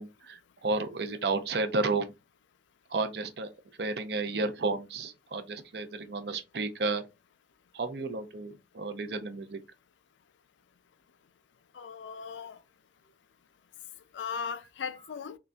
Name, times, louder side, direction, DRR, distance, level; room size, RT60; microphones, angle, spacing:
voice 1, 0.0-2.1 2.9-3.5 3.8-7.0 7.7-9.6, right 3 dB, 60° right, 0.6 m, -32 dB
voice 2, 11.7-12.6 14.1-15.4, left 6 dB, 80° left, 0.4 m, -37 dB
3.9 x 3.2 x 2.3 m
head